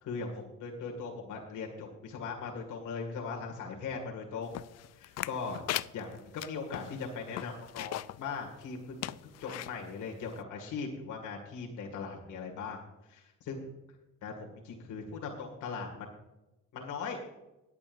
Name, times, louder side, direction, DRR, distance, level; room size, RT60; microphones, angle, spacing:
voice 1, 0.0-4.5 4.9-5.6 5.9-12.8 13.1-13.7 14.2-16.1 16.7-17.2, left 5 dB, 80° left, 1 dB, 2.2 m, -39 dB
sound 1, 4.5-8.2 8.6-8.7 9.0-9.7 10.3-10.4, left 14 dB, 60° left, 0.4 m, -38 dB
20.5 x 8.4 x 2.6 m, 0.99 s
cardioid pair, 90°, 30 cm